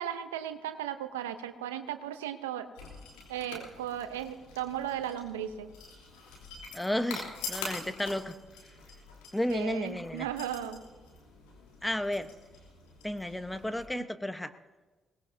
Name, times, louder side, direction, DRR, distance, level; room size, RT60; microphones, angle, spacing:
voice 1, 0.0-2.7 3.3-5.7 9.5-10.8 14.0-14.1, right 10 dB, 90° right, 10 dB, 0.7 m, -36 dB
sound 1, 2.7-13.8, left 4 dB, 85° left, 3.0 m, -45 dB
voice 2, 6.7-8.3 9.3-10.3 11.8-12.3 13.0-14.5, left 1 dB, 10° left, 10 dB, 1.1 m, -32 dB
21.5 x 19.0 x 2.8 m, 1.3 s
hypercardioid pair, 45°, 0 cm